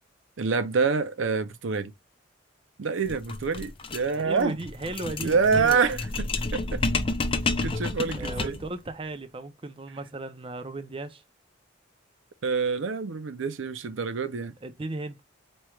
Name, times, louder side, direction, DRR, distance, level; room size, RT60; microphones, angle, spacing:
voice 1, 0.4-1.9 2.8-4.6 5.2-6.8 7.6-8.6 12.4-14.5, right 5 dB, 75° right, 0.5 m, -26 dB
sound 1, 3.0-8.7, left 3 dB, 30° left, 0.5 m, -30 dB
voice 2, 4.1-6.0 8.2-11.2 14.6-15.2, right 2 dB, 25° right, 0.5 m, -36 dB
4.4 x 3.1 x 2.3 m
head